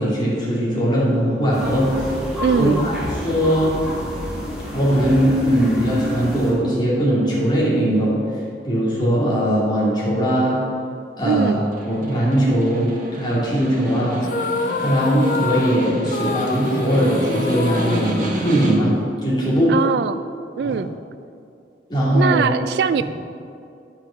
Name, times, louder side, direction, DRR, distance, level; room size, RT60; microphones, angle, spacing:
voice 1, 0.0-2.1 2.6-3.0 3.2-3.7 4.7-8.2 8.6-10.6 11.2-11.6 11.9-14.2 14.8-18.9 19.2-19.7 20.6-20.8 21.9-22.5, equal, 25° left, -7 dB, 2.6 m, -20 dB
sound 1, 1.5-6.5, equal, 5° right, 2.3 m, -29 dB
voice 2, 2.4-2.9 11.2-11.7 19.7-20.2 20.6-21.0 22.1-23.0, right 6 dB, 65° right, 13 dB, 0.3 m, -21 dB
Snare drum, 11.6-19.0, equal, 45° right, 1.3 m, -30 dB
sound 2, 14.2-19.0, left 3 dB, 45° left, 0.4 m, -27 dB
10.5 x 5.8 x 5.7 m, 2.5 s
head